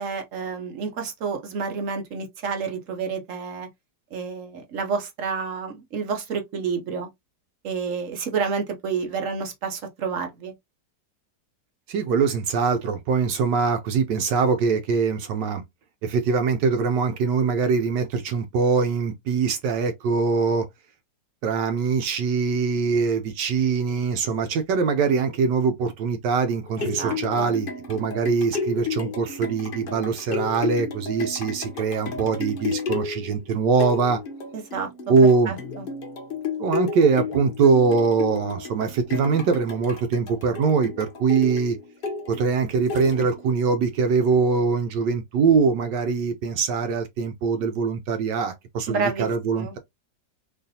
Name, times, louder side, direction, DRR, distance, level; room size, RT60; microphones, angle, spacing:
voice 1, 0.0-3.7 4.1-7.1 7.6-10.5 26.8-27.5 34.5-34.9 35.5-35.9 48.9-49.3 49.6-49.7, right 5 dB, 55° right, 0.9 m, -29 dB
voice 2, 11.9-15.6 16.0-20.7 21.4-34.2 35.1-35.5 36.6-41.8 42.3-49.8, right 5 dB, 75° right, 1.2 m, -22 dB
sound 1, 26.5-43.6 44.1-44.2, left 4 dB, 55° left, 0.6 m, -33 dB
3.8 x 3.1 x 2.7 m
omnidirectional pair, 1.9 m